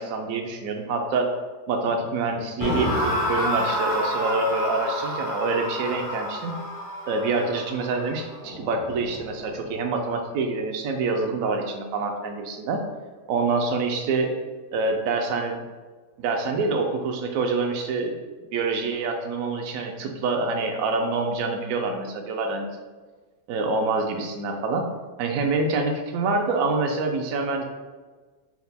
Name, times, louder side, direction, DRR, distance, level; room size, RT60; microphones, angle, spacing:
voice 1, 0.0-1.3 1.7-6.5 7.1-12.8 13.3-14.3 14.7-15.6 16.2-18.2 18.5-22.7 23.5-24.9 25.2-27.6, right 3 dB, 70° right, 4 dB, 0.8 m, -26 dB
sound 1, 2.6-9.7, equal, 75° left, 1.5 m, -29 dB
4.4 x 2.1 x 4.0 m, 1.3 s
omnidirectional pair, 1.8 m